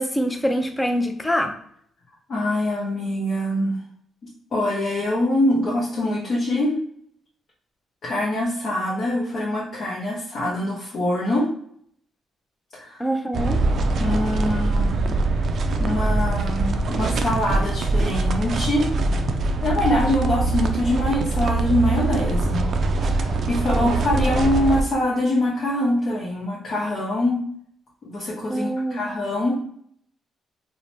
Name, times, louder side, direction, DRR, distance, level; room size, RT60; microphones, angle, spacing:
voice 1, 0.0-1.5 13.0-13.6 23.7-23.9 28.5-29.0, equal, 10° left, 5 dB, 0.4 m, -24 dB
voice 2, 2.3-3.8 4.5-6.7 8.0-11.5 12.7-13.0 14.0-15.2 15.8-18.9 19.6-22.7 23.0-27.4 28.0-29.5, left 1 dB, 55° left, -5 dB, 0.7 m, -24 dB
sound 1, 13.3-24.8, right 3 dB, 55° right, 0.3 m, -23 dB
2.7 x 2.1 x 3.1 m, 0.63 s
cardioid pair, 90°, 0 cm